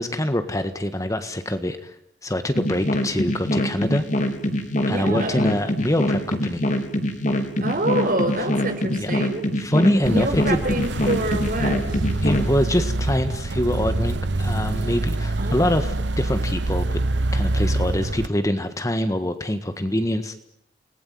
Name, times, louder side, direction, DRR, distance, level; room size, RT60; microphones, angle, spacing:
voice 1, 0.0-1.9 2.2-4.0 4.9-6.6 8.9-9.1 9.6-10.6 12.2-17.0 17.3-20.3, left 1 dB, 20° left, 9 dB, 1.6 m, -24 dB
sound 1, 2.6-12.5, left 1 dB, 40° left, 3.7 m, -24 dB
voice 2, 4.9-5.4 7.6-9.4 10.1-12.0 15.4-15.7, right 1 dB, 50° right, 6 dB, 4.9 m, -26 dB
sound 2, 10.0-18.3, right 2 dB, 70° right, 1.0 m, -25 dB
30.0 x 20.0 x 9.5 m, 0.77 s
head